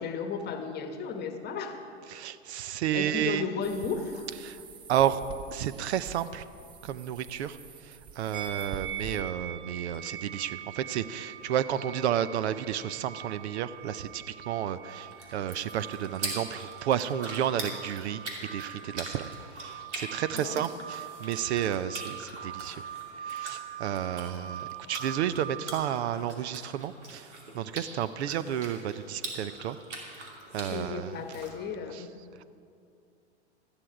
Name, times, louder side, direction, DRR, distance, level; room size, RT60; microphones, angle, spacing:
voice 1, 0.0-1.8 2.9-4.3 20.3-20.6 30.7-32.1, left 5 dB, 30° left, 6 dB, 1.1 m, -34 dB
voice 2, 2.1-3.5 4.4-4.6 4.9-5.2 5.5-6.5 6.8-7.6 7.8-18.2 18.5-22.8 23.2-29.8 30.1-31.2 31.9-32.0, right 10 dB, 70° right, 15 dB, 0.6 m, -31 dB
sound 1, 3.6-9.2, right 6 dB, 15° right, 0.4 m, -47 dB
sound 2, 8.3-25.7, right 9 dB, 35° right, 1.3 m, -43 dB
sound 3, 14.9-31.5, right 2 dB, 85° right, 2.8 m, -43 dB
13.5 x 9.9 x 4.8 m, 2.5 s
hypercardioid pair, 115°, 34 cm